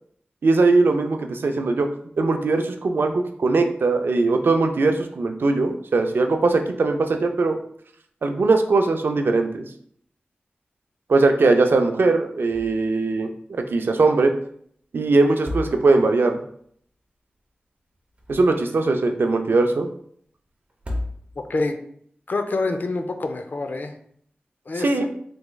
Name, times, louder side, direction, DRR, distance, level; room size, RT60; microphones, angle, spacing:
voice 1, 0.4-1.9 2.2-7.6 8.2-9.6 11.1-14.3 14.9-16.4 18.3-19.9 24.8-25.1, right 3 dB, 75° right, 5 dB, 0.3 m, -20 dB
sound 1, 12.5-13.0 13.3-13.4 15.2-16.2 17.9-18.8 20.7-21.6, left 1 dB, 35° right, 0.7 m, -33 dB
voice 2, 22.3-24.0 24.7-25.1, left 3 dB, 60° left, 6 dB, 0.4 m, -26 dB
3.5 x 3.0 x 2.2 m, 0.64 s
wide cardioid pair, 65°, 4 cm